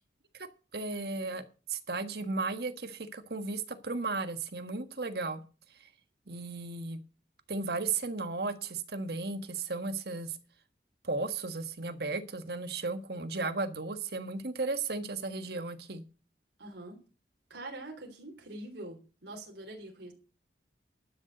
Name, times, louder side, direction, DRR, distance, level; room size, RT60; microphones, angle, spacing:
voice 1, 0.7-1.4 1.7-5.4 6.3-7.0 7.5-10.4 11.0-16.0, right 3 dB, 60° right, 10 dB, 1.5 m, -35 dB
voice 2, 16.6-17.0 17.5-20.1, right 2 dB, 80° right, 0 dB, 3.5 m, -44 dB
12.0 x 6.6 x 7.9 m, 0.35 s
head